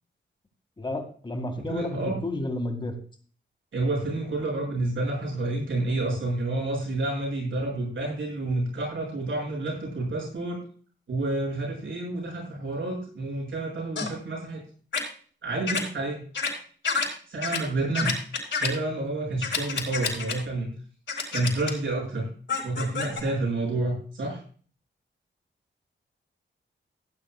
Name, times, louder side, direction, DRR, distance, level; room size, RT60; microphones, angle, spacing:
voice 1, 0.8-2.9, left 1 dB, 25° left, 5 dB, 2.1 m, -31 dB
voice 2, 1.7-2.2 3.7-10.6 11.1-14.6 15.4-16.2 17.3-20.7 21.3-22.3 22.6-24.4, right 2 dB, 85° right, -2 dB, 6.9 m, -29 dB
sound 1, 14.0-14.1 14.9-15.0 15.7-15.8 16.3-16.5 16.8-17.1 17.4-17.6 17.9-18.7 19.4-20.3 21.1-21.7 22.5-23.2, left 5 dB, 75° left, 4.7 m, -28 dB
17.0 x 10.0 x 2.4 m, 0.43 s
wide cardioid pair, 170°, 20 cm